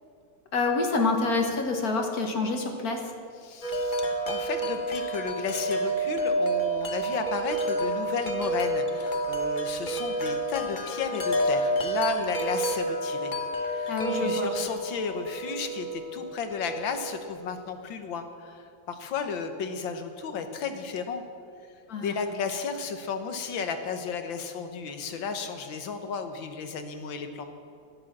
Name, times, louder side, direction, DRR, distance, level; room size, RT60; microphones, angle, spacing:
voice 1, 0.5-3.1 13.9-14.5 21.9-22.1, left 3 dB, 50° left, 3 dB, 1.7 m, -27 dB
voice 2, 3.4-4.0 4.3-13.3 13.6-21.2 22.0-27.5, left 5 dB, 70° left, 7 dB, 1.8 m, -33 dB
Wind chime, 3.6-17.6, right 1 dB, 35° left, 0.9 m, -29 dB
12.0 x 11.0 x 7.4 m, 2.4 s
omnidirectional pair, 2.2 m